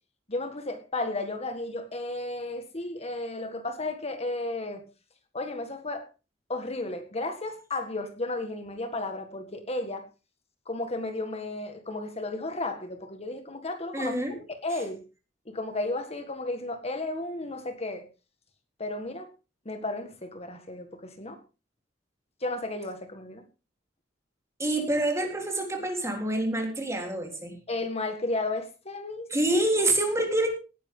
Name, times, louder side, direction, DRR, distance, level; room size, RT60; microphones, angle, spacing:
voice 1, 0.3-4.8 5.3-6.1 6.5-10.1 10.7-14.2 14.5-15.0 15.5-18.0 18.8-19.3 19.7-21.4 22.4-23.4 27.7-29.3, left 2 dB, 35° left, 6 dB, 1.7 m, -33 dB
voice 2, 13.9-14.4 24.6-27.6 29.3-30.5, right 1 dB, 15° right, 2 dB, 3.8 m, -27 dB
18.0 x 10.5 x 3.8 m, 0.32 s
head